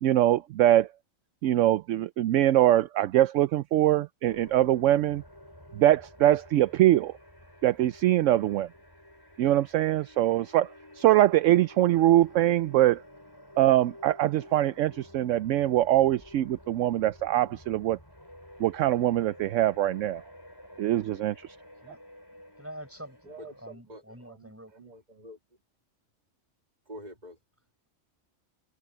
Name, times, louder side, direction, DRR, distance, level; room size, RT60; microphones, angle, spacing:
voice 1, 0.0-0.9 1.4-5.2 5.7-7.1 7.6-8.7 9.4-10.7 11.0-13.0 13.6-18.0 18.6-20.2 20.8-21.5, right 13 dB, 70° right, 0.9 m, -23 dB
sound 1, 4.3-23.7, left 1 dB, 15° left, 6.6 m, -51 dB
voice 2, 22.6-24.9, right 1 dB, 10° right, 6.7 m, -46 dB
voice 3, 23.3-25.4 26.9-27.4, right 1 dB, 30° right, 2.1 m, -46 dB
omnidirectional pair, 1.4 m